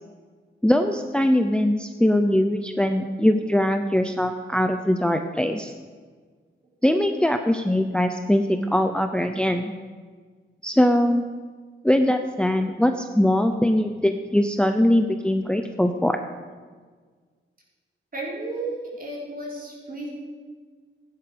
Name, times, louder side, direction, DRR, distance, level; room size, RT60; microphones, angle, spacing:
voice 1, 0.6-5.7 6.8-9.7 10.6-11.2 11.8-16.2, left 1 dB, 5° left, 6 dB, 0.7 m, -21 dB
voice 2, 18.1-20.1, right 2 dB, 45° right, -4 dB, 4.8 m, -33 dB
16.5 x 11.0 x 5.2 m, 1.5 s
wide cardioid pair, 100°, 21 cm